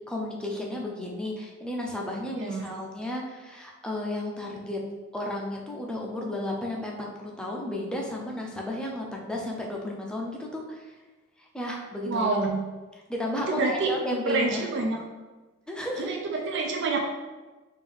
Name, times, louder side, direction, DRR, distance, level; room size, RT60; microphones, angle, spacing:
voice 1, 0.1-4.8 5.1-10.9 11.4-12.3 13.1-14.7 15.7-16.1, left 1 dB, 5° left, -2 dB, 0.5 m, -33 dB
voice 2, 2.4-2.7 12.0-12.6 13.5-13.9 14.3-15.0 16.0-17.0, right 3 dB, 60° right, 1 dB, 0.4 m, -27 dB
3.6 x 2.6 x 3.4 m, 1.2 s
head